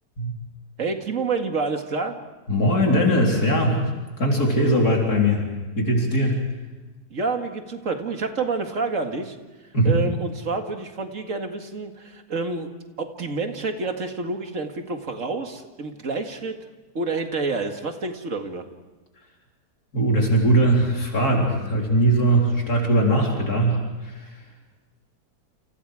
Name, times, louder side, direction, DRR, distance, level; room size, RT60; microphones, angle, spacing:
voice 1, 0.8-2.1 7.1-9.4 9.8-12.7 13.0-16.5 16.9-18.6, right 4 dB, 55° right, 5 dB, 2.3 m, -28 dB
voice 2, 2.5-3.9 4.2-5.4 5.8-6.4 9.7-10.0 19.9-24.4, right 1 dB, 70° left, -1 dB, 4.5 m, -20 dB
29.5 x 29.0 x 4.9 m, 1.2 s
omnidirectional pair, 1.7 m